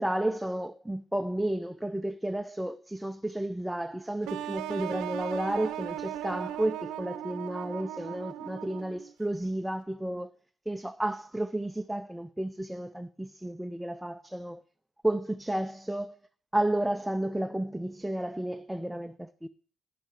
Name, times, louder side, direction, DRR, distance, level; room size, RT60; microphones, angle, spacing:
voice 1, 0.0-10.3 10.7-14.6 15.0-16.2 16.5-19.5, right 1 dB, 5° right, 0.6 m, -32 dB
sound 1, 4.3-9.1, right 12 dB, 80° right, 0.8 m, -37 dB
10.0 x 8.9 x 6.5 m
supercardioid pair, 75°, 0 cm